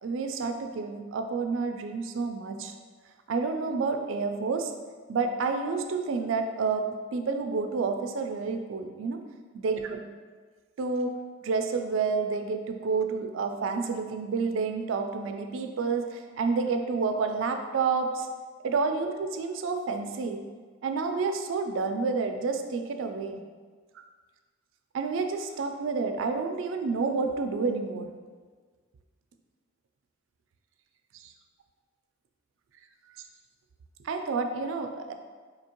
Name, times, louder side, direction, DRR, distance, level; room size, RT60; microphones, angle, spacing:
voice 1, 0.0-2.7 3.3-4.7 5.1-9.2 9.5-10.0 10.8-11.2 11.4-18.3 18.6-20.4 20.8-23.4 24.9-28.1 31.1-31.3 34.0-35.1, right 4 dB, 75° right, 6 dB, 0.4 m, -29 dB
4.4 x 2.8 x 2.9 m, 1.5 s
head